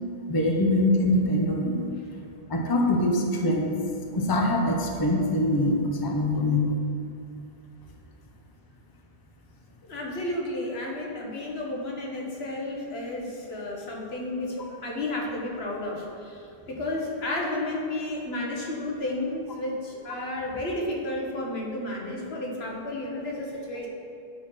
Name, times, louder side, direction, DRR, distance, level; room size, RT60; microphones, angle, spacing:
voice 1, 0.3-1.9 2.5-3.7 4.1-6.7, left 1 dB, 25° left, 1 dB, 0.7 m, -23 dB
voice 2, 9.8-23.9, left 1 dB, 75° left, -1 dB, 1.5 m, -32 dB
8.9 x 4.3 x 5.7 m, 2.6 s
omnidirectional pair, 1.1 m